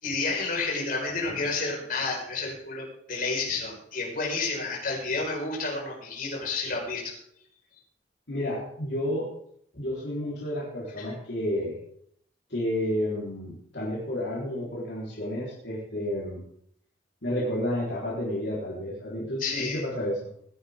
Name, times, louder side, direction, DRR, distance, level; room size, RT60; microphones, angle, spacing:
voice 1, 0.0-7.1 9.7-9.8 11.0-11.1 19.4-19.8, left 3 dB, 50° left, -2 dB, 5.1 m, -30 dB
voice 2, 8.3-9.3 9.8-11.8 12.5-16.4 17.2-20.3, left 1 dB, 65° left, -7 dB, 4.1 m, -31 dB
20.5 x 10.5 x 3.7 m, 0.69 s
head